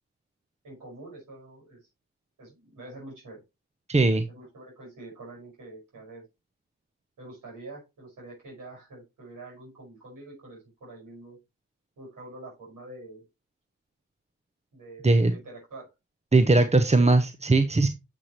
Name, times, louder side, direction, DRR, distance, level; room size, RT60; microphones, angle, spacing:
voice 1, 0.6-1.8 2.4-3.4 4.1-6.2 7.2-11.4 12.0-13.3 14.7-15.9, right 2 dB, 70° right, -1 dB, 5.5 m, -46 dB
voice 2, 3.9-4.3 15.0-15.3 16.3-17.9, right 2 dB, 20° right, 9 dB, 0.9 m, -20 dB
9.5 x 6.1 x 3.0 m, 0.24 s
supercardioid pair, 40°, 33 cm